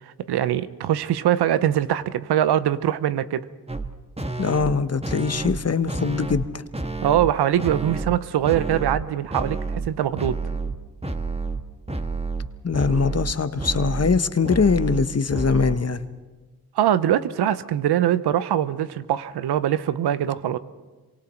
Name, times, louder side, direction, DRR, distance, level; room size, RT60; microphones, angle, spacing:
voice 1, 0.3-3.4 7.0-10.4 16.8-20.6, right 11 dB, 80° right, 15 dB, 0.8 m, -22 dB
sound 1, 3.7-3.9 4.2-4.7 5.0-5.6 5.9-6.5 6.7-7.3 7.6-8.2 8.4-9.0 9.3-9.9 10.2-10.8 11.0-11.6 11.9-15.8, right 3 dB, 15° right, 1.6 m, -29 dB
voice 2, 4.4-6.6 12.6-16.0, left 5 dB, 40° left, 11 dB, 1.2 m, -22 dB
27.0 x 24.0 x 4.4 m, 1.3 s
supercardioid pair, 40°, 39 cm